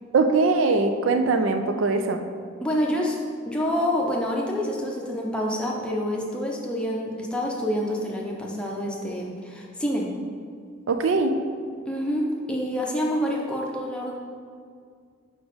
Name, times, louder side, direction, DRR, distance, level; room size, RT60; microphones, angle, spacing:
voice 1, 0.1-2.2 10.9-11.4, right 3 dB, 75° right, 7 dB, 0.5 m, -21 dB
voice 2, 2.6-3.2 3.5-10.1 11.9-14.1, equal, 5° left, -2 dB, 0.8 m, -27 dB
5.3 x 4.8 x 5.1 m, 2.2 s
head